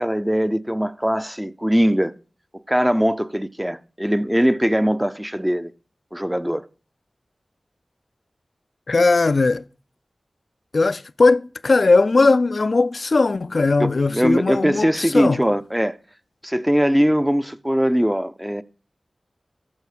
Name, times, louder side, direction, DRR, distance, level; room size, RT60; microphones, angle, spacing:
voice 1, 0.0-2.1 2.7-5.7 6.1-6.7 13.8-16.0 16.4-18.6, equal, 10° right, 0.5 m, -21 dB
voice 2, 8.9-9.6 10.7-15.4, left 3 dB, 65° left, 0.3 m, -18 dB
13.5 x 4.6 x 4.9 m
cardioid pair, 40°, 0 cm